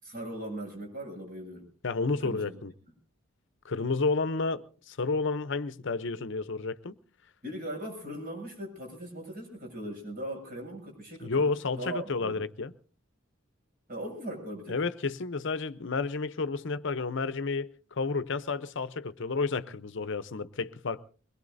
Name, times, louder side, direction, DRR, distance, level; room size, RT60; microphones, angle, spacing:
voice 1, 0.0-1.7 2.2-2.5 7.4-11.5 11.8-12.4 13.9-14.8, right 1 dB, 45° right, 7.3 m, -39 dB
voice 2, 1.8-2.7 3.6-7.0 11.2-12.7 14.7-21.0, left 4 dB, 60° left, 0.7 m, -31 dB
23.0 x 21.0 x 2.6 m
head